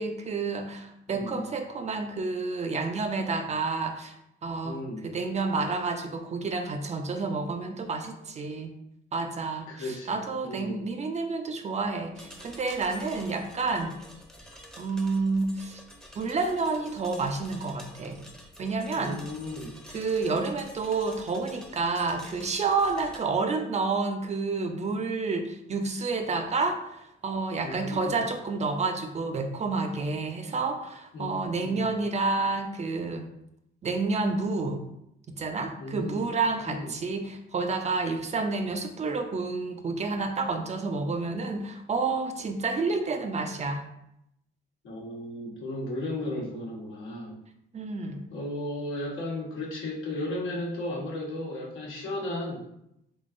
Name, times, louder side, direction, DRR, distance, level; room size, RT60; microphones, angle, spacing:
voice 1, 0.0-4.2 4.4-8.7 9.1-14.0 14.8-15.8 16.1-18.2 18.6-19.2 19.9-33.3 33.8-34.8 35.4-43.8 47.7-48.3, right 3 dB, 35° right, 5 dB, 0.5 m, -29 dB
voice 2, 1.1-1.5 4.6-5.1 9.7-10.2 10.4-10.8 18.9-19.7 27.6-28.2 31.1-31.9 35.8-36.3 36.7-36.9 44.8-47.4 48.3-52.6, left 1 dB, 85° left, -4 dB, 1.2 m, -35 dB
sound 1, 12.1-23.2, equal, 5° left, 0.7 m, -49 dB
3.6 x 3.5 x 2.5 m, 0.79 s
cardioid pair, 90°, 20 cm